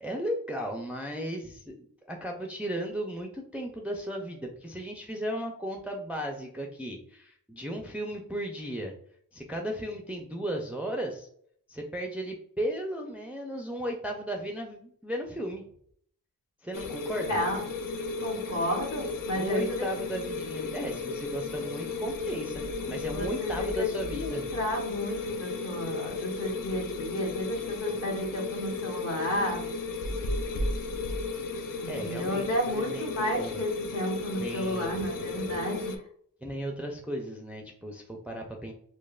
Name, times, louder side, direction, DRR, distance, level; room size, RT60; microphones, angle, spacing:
voice 1, 0.0-1.7 2.1-8.9 9.3-11.3 11.7-15.7 16.6-17.4 19.3-24.5 31.9-33.6 34.4-35.7 36.4-38.7, equal, 5° right, 1 dB, 0.4 m, -35 dB
sound 1, 16.7-36.0, left 3 dB, 65° left, 0.5 m, -34 dB
voice 2, 17.2-17.6 18.2-19.9 23.1-29.6 31.8-36.0, left 1 dB, 40° left, -1 dB, 1.1 m, -32 dB
5.1 x 2.1 x 2.3 m, 0.63 s
wide cardioid pair, 110°, 36 cm